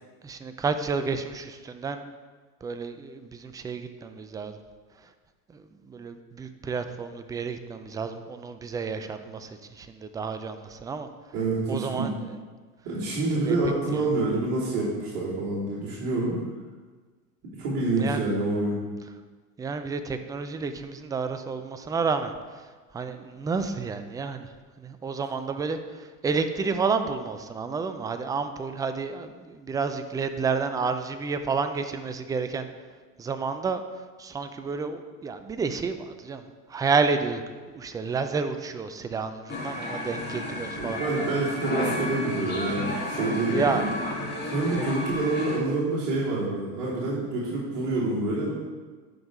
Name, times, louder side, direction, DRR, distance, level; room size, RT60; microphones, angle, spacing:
voice 1, 0.2-2.0 2.6-4.6 5.5-11.1 11.7-12.4 13.4-13.6 13.9-14.1 18.0-18.3 19.6-22.7 22.9-24.5 24.8-32.7 33.2-33.8 34.2-36.4 36.7-37.4 37.7-41.0 43.5-44.5 44.8-45.1, right 5 dB, 10° right, 9 dB, 0.3 m, -30 dB
voice 2, 11.3-12.1 12.8-16.3 17.6-18.8 40.7-43.9 44.4-48.5, right 2 dB, 60° right, -9 dB, 3.2 m, -27 dB
sound 1, 39.5-45.6, left 2 dB, 20° left, 2.6 m, -32 dB
11.0 x 5.4 x 4.7 m, 1.4 s
hypercardioid pair, 90°, 46 cm